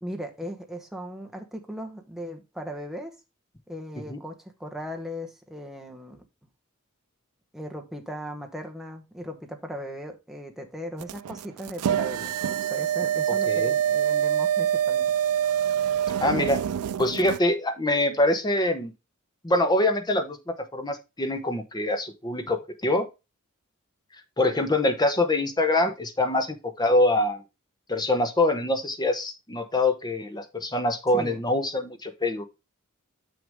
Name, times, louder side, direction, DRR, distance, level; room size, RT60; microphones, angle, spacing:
voice 1, 0.0-3.1 3.7-6.2 7.5-15.1 31.1-31.4, equal, ahead, 1.1 m, -38 dB
sound 1, 11.0-17.4, right 9 dB, 85° right, 0.4 m, -25 dB
voice 2, 13.5-13.8 16.2-16.6 17.0-18.9 19.4-23.1 24.4-27.4 27.9-32.5, left 1 dB, 20° left, 1.0 m, -24 dB
7.0 x 6.3 x 3.5 m
head